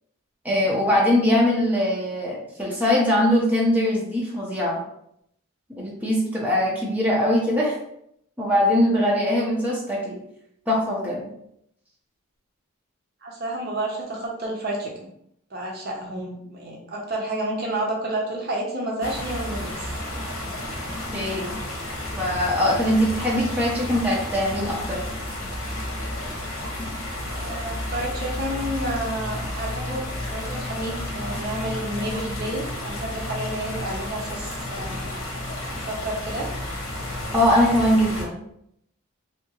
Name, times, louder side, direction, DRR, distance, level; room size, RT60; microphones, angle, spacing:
voice 1, 0.4-4.8 5.8-7.7 8.4-10.2 10.7-11.3 21.1-21.5 22.2-25.0 37.3-38.4, left 1 dB, 10° right, -5 dB, 0.6 m, -21 dB
voice 2, 13.2-15.1 15.5-19.9 27.3-35.1 35.7-36.5, right 1 dB, 45° right, -1 dB, 0.6 m, -30 dB
sound 1, 19.0-38.2, left 1 dB, 70° left, 1.0 m, -32 dB
3.4 x 2.7 x 2.9 m, 0.75 s
head